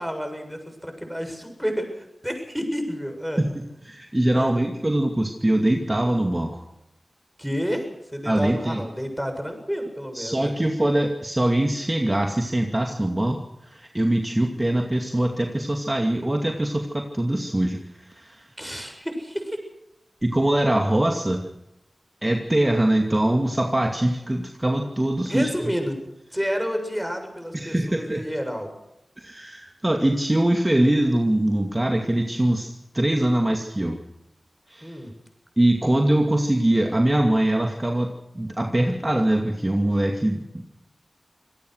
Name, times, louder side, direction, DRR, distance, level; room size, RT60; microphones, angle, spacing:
voice 1, 0.0-3.4 4.3-4.5 7.4-7.9 8.1-10.7 18.6-19.6 25.3-26.0 26.3-28.7 34.8-35.1, equal, ahead, 5 dB, 7.2 m, -30 dB
voice 2, 3.4-6.6 8.3-8.8 10.1-18.5 20.2-21.4 22.2-25.7 27.5-28.2 29.2-34.0 34.7-34.9 35.6-40.7, right 1 dB, 25° right, 3 dB, 2.4 m, -23 dB
26.5 x 17.5 x 6.5 m, 0.87 s
cardioid pair, 45°, 0 cm